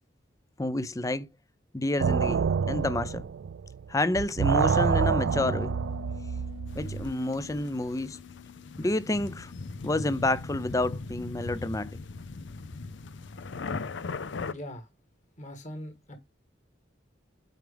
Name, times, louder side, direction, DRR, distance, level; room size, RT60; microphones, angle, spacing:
voice 1, 0.6-1.3 1.7-3.2 3.9-5.8 6.7-8.2 8.8-9.5 9.8-11.9, left 2 dB, 15° left, 0.5 m, -29 dB
sound 1, 2.0-7.1, right 6 dB, 70° right, 0.4 m, -27 dB
Bass guitar, 5.3-11.5, left 13 dB, 90° left, 1.3 m, -48 dB
sound 2, 6.7-14.5, left 4 dB, 65° left, 0.5 m, -39 dB
voice 2, 14.5-14.9 15.4-16.2, equal, 40° left, 1.8 m, -41 dB
9.2 x 4.7 x 3.5 m
head